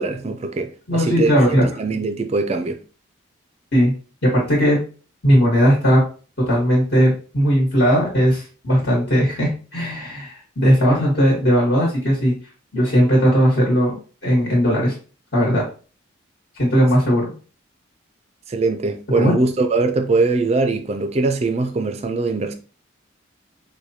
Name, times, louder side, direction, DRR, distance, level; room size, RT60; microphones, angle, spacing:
voice 1, 0.0-1.3 1.8-2.8 18.5-22.5, right 3 dB, 30° right, 0.3 m, -21 dB
voice 2, 0.9-1.7 3.7-3.9 4.2-4.8 5.2-6.0 6.4-12.3 12.7-14.9 15.3-15.6 16.5-17.3 19.1-19.3, equal, 55° left, 1.4 m, -17 dB
4.7 x 2.2 x 2.7 m
head